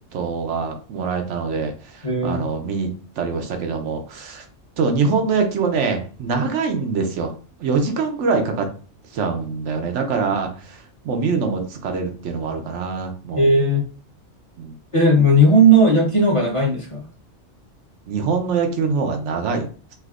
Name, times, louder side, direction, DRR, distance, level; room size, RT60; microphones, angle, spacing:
voice 1, 0.1-2.9 3.2-4.4 4.8-7.3 7.6-8.7 9.1-13.5 14.6-14.7 18.1-19.9, right 5 dB, 75° right, 5 dB, 0.9 m, -24 dB
voice 2, 2.0-2.4 13.4-13.8 14.9-17.0, right 1 dB, 30° left, -3 dB, 0.8 m, -16 dB
3.3 x 2.6 x 2.4 m, 0.39 s
omnidirectional pair, 1.3 m